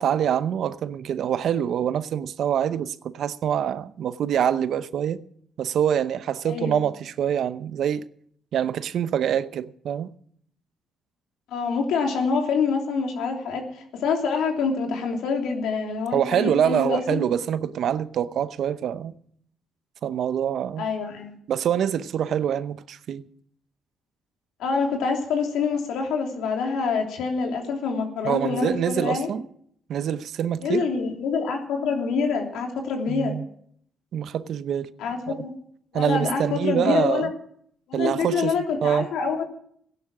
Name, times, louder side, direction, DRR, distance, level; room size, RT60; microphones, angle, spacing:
voice 1, 0.0-5.2 5.6-8.1 8.5-10.1 16.1-19.1 20.0-20.9 21.5-23.2 28.2-29.4 29.9-30.8 33.1-33.4 34.1-34.9 35.3-35.4 35.9-37.3 37.9-38.5 38.8-39.1, right 9 dB, 70° right, 0.7 m, -25 dB
voice 2, 6.5-6.8 11.5-17.2 20.8-21.3 24.6-29.3 30.6-33.3 35.0-35.5 35.9-37.3 37.9-39.4, left 5 dB, 85° left, 3.1 m, -26 dB
16.0 x 11.0 x 6.1 m
cardioid pair, 90°, 0 cm